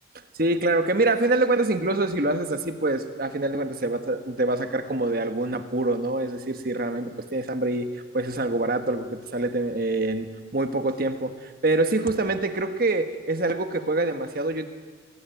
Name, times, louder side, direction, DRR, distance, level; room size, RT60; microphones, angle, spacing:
voice 1, 0.3-7.9 8.1-14.7, right 2 dB, 50° right, 8 dB, 1.5 m, -25 dB
22.0 x 16.5 x 9.2 m, 1.5 s
head